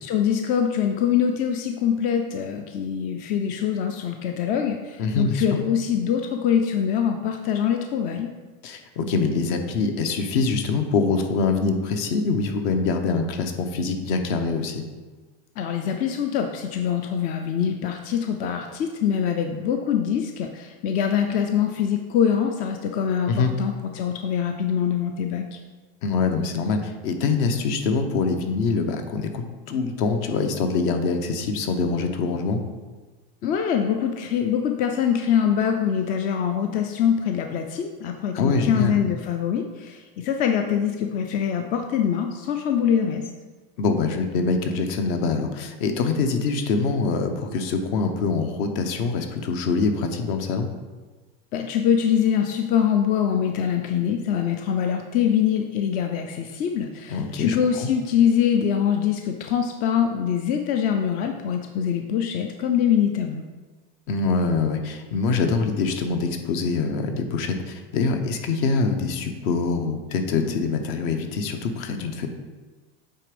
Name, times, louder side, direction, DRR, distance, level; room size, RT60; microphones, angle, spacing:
voice 1, 0.0-8.3 15.6-25.5 33.4-43.2 51.5-63.4, left 8 dB, 30° left, 4 dB, 0.4 m, -24 dB
voice 2, 5.0-5.5 8.6-14.8 23.2-23.5 26.0-32.6 38.3-39.0 43.8-50.7 57.1-57.9 64.1-72.3, left 4 dB, 55° left, 6 dB, 0.9 m, -24 dB
8.2 x 3.4 x 5.1 m, 1.3 s
supercardioid pair, 155°, 29 cm